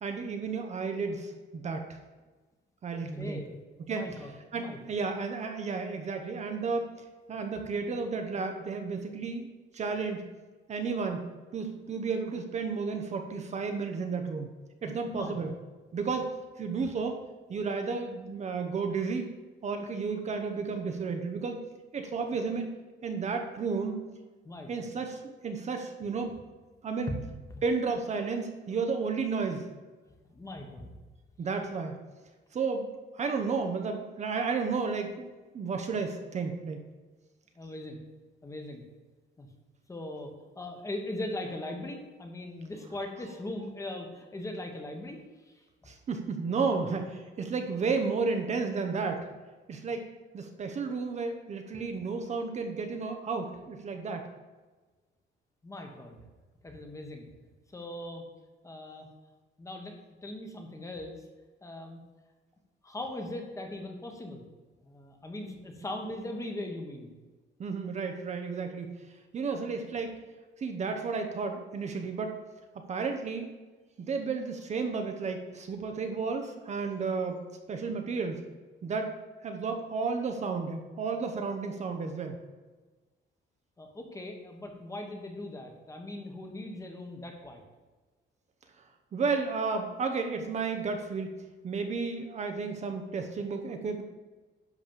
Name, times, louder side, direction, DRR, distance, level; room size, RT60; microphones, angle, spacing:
voice 1, 0.0-1.8 2.8-3.4 3.9-4.0 4.5-6.9 7.3-9.5 9.7-10.2 10.7-14.5 14.8-15.5 15.9-16.3 16.6-17.2 17.5-19.3 19.6-21.7 21.9-22.7 23.0-24.0 24.7-26.4 26.8-27.1 27.6-29.7 31.4-31.9 32.5-35.3 35.5-36.8 45.9-49.2 49.7-50.1 50.3-54.3 67.6-68.9 69.3-70.1 70.6-72.3 72.8-73.5 74.0-78.4 78.8-79.1 79.4-82.4 89.1-91.3 91.6-94.0, right 4 dB, 35° right, 5 dB, 0.9 m, -32 dB
voice 2, 2.9-3.5 3.9-4.8 15.1-15.4 24.4-24.9 26.3-26.4 27.1-27.2 27.5-27.6 30.2-30.9 37.6-38.0 38.4-38.8 39.4-39.5 39.9-45.5 55.6-56.2 56.6-57.3 57.7-58.2 58.6-59.1 59.6-59.9 60.2-61.2 61.6-62.0 62.8-64.4 64.8-67.1 83.8-87.6, left 1 dB, 15° left, 3 dB, 1.2 m, -40 dB
11.0 x 4.1 x 7.3 m, 1.3 s
cardioid pair, 175°, 20 cm